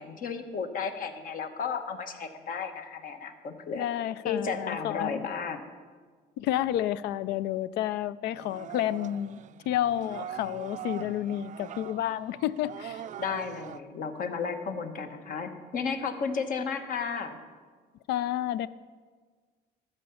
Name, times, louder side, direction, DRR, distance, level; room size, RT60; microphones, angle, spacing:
voice 1, 0.0-3.9 4.2-5.6 13.2-17.4, left 5 dB, 55° left, 7 dB, 1.1 m, -33 dB
voice 2, 3.7-5.3 6.4-9.4 9.7-13.0 18.1-18.7, left 12 dB, 80° left, 18 dB, 0.4 m, -30 dB
sound 1, 8.4-13.8, right 10 dB, 45° right, 0.4 m, -42 dB
13.0 x 5.5 x 7.1 m, 1.6 s
cardioid pair, 110°, 17 cm